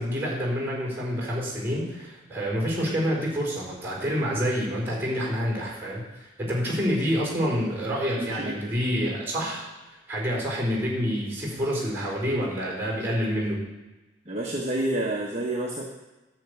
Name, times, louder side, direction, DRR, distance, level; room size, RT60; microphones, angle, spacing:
voice 1, 0.0-13.6, equal, 10° right, -3 dB, 4.3 m, -28 dB
voice 2, 8.2-8.7 14.3-15.8, right 1 dB, 35° right, -3 dB, 1.1 m, -29 dB
10.5 x 4.9 x 8.2 m, 1.1 s
head